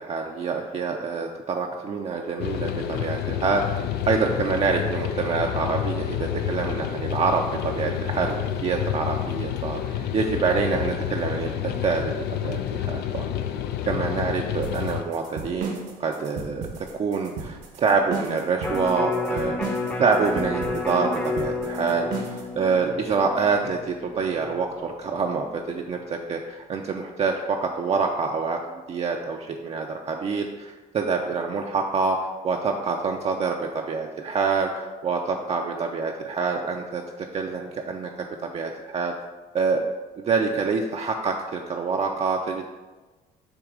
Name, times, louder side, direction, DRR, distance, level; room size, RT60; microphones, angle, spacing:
voice 1, 0.0-12.1 12.4-13.3 13.9-19.6 20.0-28.6 28.9-32.2 32.4-39.1 39.5-39.8 40.2-42.7, right 4 dB, 40° right, 2 dB, 0.5 m, -26 dB
sound 1, 2.4-15.0, left 10 dB, 75° left, 0.5 m, -29 dB
sound 2, 14.6-22.5, right 5 dB, 80° right, 1.2 m, -35 dB
Electric guitar, 18.6-24.8 25.2-25.3, left 3 dB, 10° left, 0.7 m, -31 dB
7.2 x 2.9 x 4.8 m, 1.2 s
cardioid pair, 110°, 17 cm